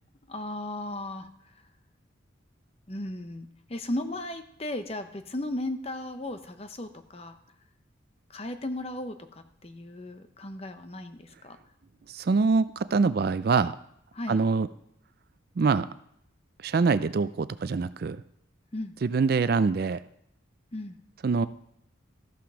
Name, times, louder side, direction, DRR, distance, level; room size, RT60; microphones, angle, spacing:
voice 1, 0.3-1.6 2.9-7.4 8.3-11.6 14.1-14.4 18.7-18.9 20.7-21.0, left 1 dB, 30° left, 9 dB, 0.7 m, -36 dB
voice 2, 12.1-13.8 14.3-14.7 15.6-15.9 16.6-18.2 19.0-20.0 21.2-21.5, right 4 dB, 50° right, 14 dB, 0.4 m, -24 dB
13.5 x 5.9 x 6.2 m, 0.73 s
head